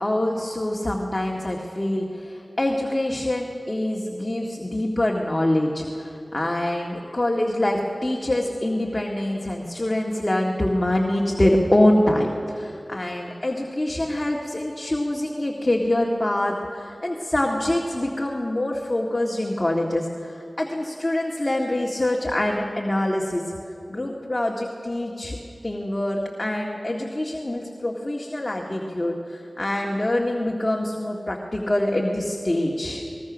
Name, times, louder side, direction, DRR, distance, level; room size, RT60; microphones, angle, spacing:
voice 1, 0.0-23.4 23.9-25.4 25.6-33.0, left 1 dB, 30° left, -1 dB, 1.9 m, -25 dB
21.0 x 20.5 x 6.3 m, 2.7 s
wide cardioid pair, 45°, 0 cm